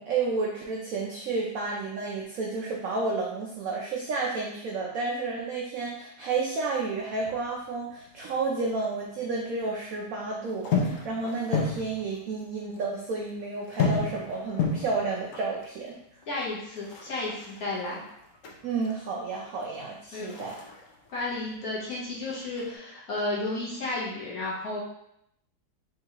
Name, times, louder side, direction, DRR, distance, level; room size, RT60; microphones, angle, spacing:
voice 1, 0.0-16.0 18.6-20.6, right 3 dB, 85° right, -2 dB, 0.7 m, -31 dB
sound 1, 7.1-8.8 9.0-10.0 10.5-12.5 12.7-12.8 13.1-18.9 19.4-22.0 22.2-22.8, left 4 dB, 85° left, 0.6 m, -33 dB
voice 2, 16.3-18.0 20.1-20.3 21.1-24.8, left 2 dB, 55° left, -6 dB, 1.3 m, -32 dB
3.7 x 3.0 x 2.8 m, 0.77 s
omnidirectional pair, 2.1 m